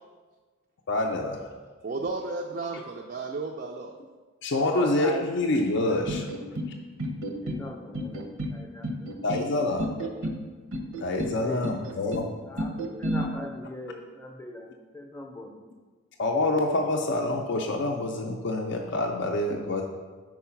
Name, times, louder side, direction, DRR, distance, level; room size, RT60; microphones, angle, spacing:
voice 1, 0.9-1.4 4.4-6.3 9.2-9.9 11.0-12.3 16.2-19.9, left 2 dB, 55° left, 1 dB, 0.4 m, -26 dB
voice 2, 1.8-3.9, right 3 dB, 40° right, 2 dB, 0.3 m, -33 dB
voice 3, 4.5-5.3 6.1-6.2 6.5-6.6 7.4-8.2 8.5-9.5 11.4-11.7 12.0-15.5, left 1 dB, 10° left, 2 dB, 0.6 m, -40 dB
sound 1, 6.1-6.7 7.0-7.6 7.9-8.6 8.8-9.5 9.8-10.4 10.7-11.3 11.6-12.3 12.6-13.2, equal, 85° right, 0.8 m, -31 dB
4.7 x 4.7 x 5.7 m, 1.4 s
head